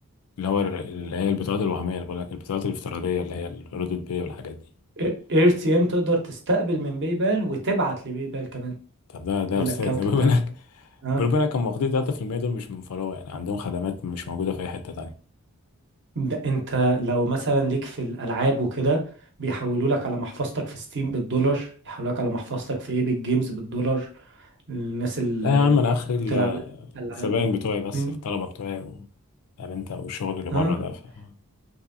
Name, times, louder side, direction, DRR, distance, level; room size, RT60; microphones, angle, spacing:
voice 1, 0.4-4.6 9.1-10.6 11.2-15.2 25.4-26.8 27.1-29.0 29.6-31.3, left 5 dB, 85° left, 0.4 m, -26 dB
voice 2, 5.0-8.7 9.6-10.3 11.0-11.2 16.2-19.0 19.4-24.1 24.7-25.7 26.3-26.6 26.9-27.4 27.9-28.1 30.5-30.7, right 2 dB, 55° right, 0.8 m, -25 dB
2.7 x 2.6 x 2.6 m
head